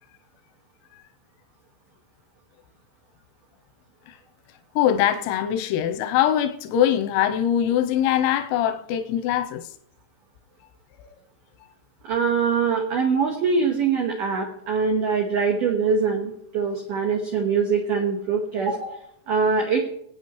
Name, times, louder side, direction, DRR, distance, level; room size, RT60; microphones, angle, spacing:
voice 1, 4.8-9.6 11.0-11.1, left 10 dB, 90° left, 3.3 m, -22 dB
voice 2, 12.0-19.8, right 5 dB, 85° right, 1.8 m, -23 dB
18.5 x 9.1 x 3.1 m
omnidirectional pair, 5.8 m